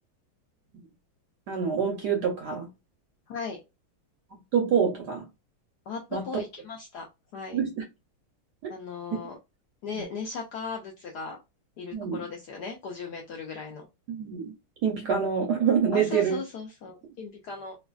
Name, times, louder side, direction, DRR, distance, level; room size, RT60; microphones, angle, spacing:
voice 1, 1.5-2.7 4.3-5.2 6.1-6.3 7.5-7.8 11.9-12.2 14.1-14.5 14.8-16.4, right 7 dB, 70° right, 1.0 m, -26 dB
voice 2, 3.3-3.6 5.9-7.1 7.3-7.6 8.7-9.4 9.8-11.4 11.8-13.9 15.9-17.8, left 5 dB, 75° left, 0.9 m, -37 dB
3.1 x 2.4 x 2.2 m
omnidirectional pair, 2.3 m